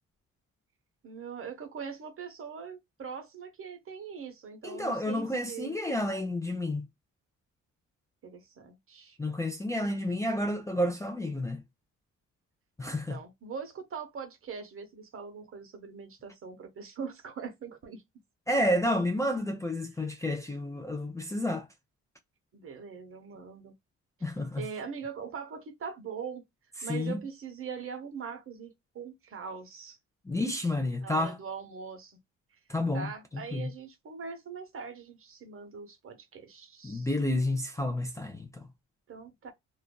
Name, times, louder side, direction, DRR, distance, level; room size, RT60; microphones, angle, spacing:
voice 1, 1.0-5.8 8.2-9.2 13.1-18.0 22.5-23.7 24.6-26.4 26.8-30.0 31.0-32.2 32.9-37.1 39.1-39.5, right 6 dB, 45° right, 0.9 m, -42 dB
voice 2, 4.6-6.9 9.2-11.6 12.8-13.2 18.5-21.7 24.2-24.6 26.8-27.2 30.3-31.4 32.7-33.7 36.8-38.7, left 1 dB, 10° left, 0.5 m, -30 dB
2.5 x 2.1 x 2.2 m
cardioid pair, 90°, 30 cm